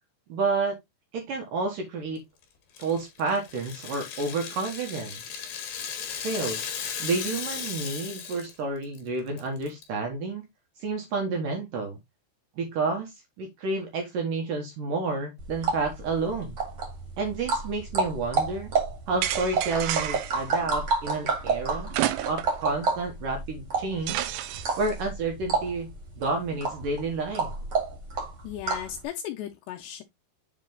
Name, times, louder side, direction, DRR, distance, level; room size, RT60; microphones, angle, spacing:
voice 1, 0.3-0.8 1.1-2.2 2.8-5.2 6.1-6.6 7.0-10.5 10.8-12.0 12.6-16.6 17.2-18.7 19.1-21.9 22.3-24.3 24.8-25.9 26.2-27.5, right 3 dB, 60° right, 2.6 m, -30 dB
Rattle (instrument), 2.8-8.6 8.8-9.0 9.4-9.8, left 7 dB, 60° left, 3.0 m, -36 dB
sound 1, 15.4-29.0, right 4 dB, 40° right, 2.3 m, -30 dB
sound 2, 19.2-20.4 21.9-22.6 23.0-23.1 24.1-24.9, right 13 dB, 80° right, 2.8 m, -30 dB
voice 2, 28.4-30.0, left 10 dB, 80° left, 2.9 m, -36 dB
7.6 x 4.0 x 3.8 m
omnidirectional pair, 5.0 m